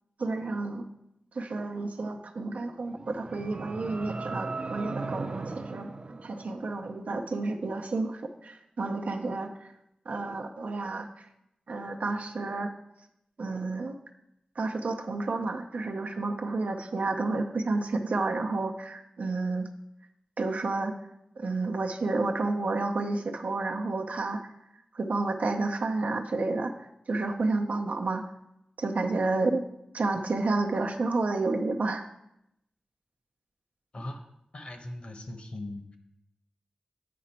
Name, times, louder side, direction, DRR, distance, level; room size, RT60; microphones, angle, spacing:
voice 1, 0.2-0.9 1.3-5.9 6.2-9.5 10.1-11.1 11.7-12.7 13.4-14.0 14.6-19.7 20.4-21.0 21.4-24.4 24.9-26.7 27.1-28.2 28.8-29.6 29.9-32.0, right 3 dB, 80° right, 4 dB, 0.7 m, -30 dB
sound 1, 2.8-7.1, right 3 dB, 45° right, 0.4 m, -38 dB
voice 2, 34.5-36.0, left 1 dB, 50° left, 5 dB, 1.0 m, -39 dB
8.5 x 5.1 x 4.3 m, 0.82 s
wide cardioid pair, 85°, 2 cm